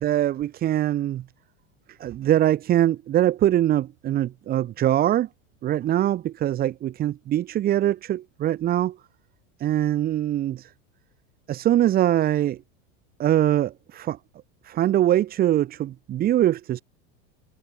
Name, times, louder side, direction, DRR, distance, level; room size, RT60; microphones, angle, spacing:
voice 1, 0.0-1.2 2.0-5.3 5.6-9.0 9.6-10.7 11.5-12.6 13.2-14.2 14.6-16.8, right 12 dB, 25° right, 0.8 m, -22 dB
supercardioid pair, 140°, 36 cm